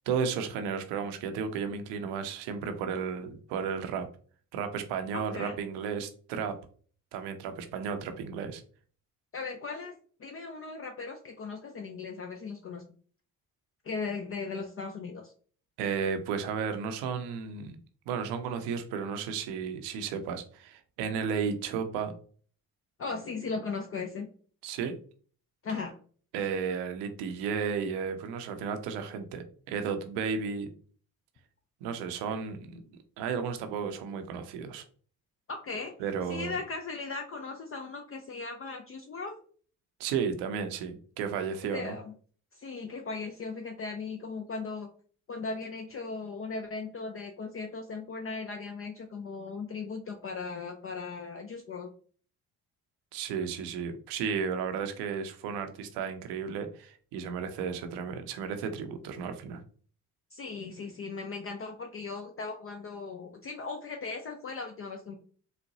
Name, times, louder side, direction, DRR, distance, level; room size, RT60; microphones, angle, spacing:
voice 1, 0.1-4.1 4.5-6.6 7.1-8.6 15.8-17.8 18.1-22.1 24.6-25.0 26.3-30.7 31.8-32.8 33.2-34.8 36.0-36.5 40.0-42.0 53.1-59.6, right 6 dB, 75° right, 8 dB, 0.6 m, -33 dB
voice 2, 5.1-5.6 9.3-9.9 10.2-12.8 13.8-15.3 23.0-24.3 25.6-25.9 35.5-35.9 36.3-39.4 41.7-42.1 42.5-44.9 45.3-51.9 60.3-65.2, left 4 dB, 35° left, 4 dB, 0.5 m, -37 dB
3.9 x 2.1 x 2.7 m, 0.44 s
hypercardioid pair, 50°, 41 cm